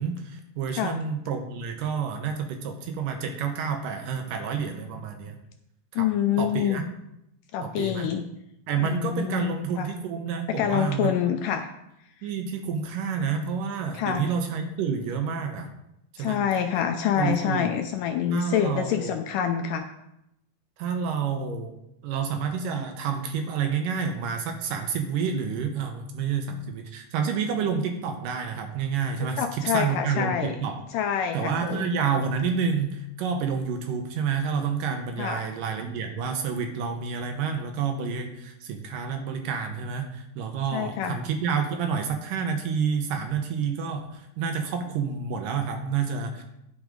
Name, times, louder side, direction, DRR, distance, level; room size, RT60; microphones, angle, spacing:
voice 1, 0.0-5.4 5.9-6.1 6.4-6.8 7.6-8.1 8.7-11.4 12.2-15.7 16.1-16.4 17.2-17.7 18.3-19.2 20.8-21.7 22.0-30.8 31.3-46.4, right 6 dB, 75° right, 5 dB, 2.3 m, -29 dB
voice 2, 6.0-6.9 7.5-8.2 8.8-9.9 10.6-11.7 13.9-14.2 16.2-19.9 29.4-30.6 30.9-31.8 35.2-35.5 40.7-41.2, left 9 dB, 80° left, 5 dB, 1.9 m, -26 dB
10.5 x 6.2 x 5.1 m, 0.83 s
omnidirectional pair, 4.3 m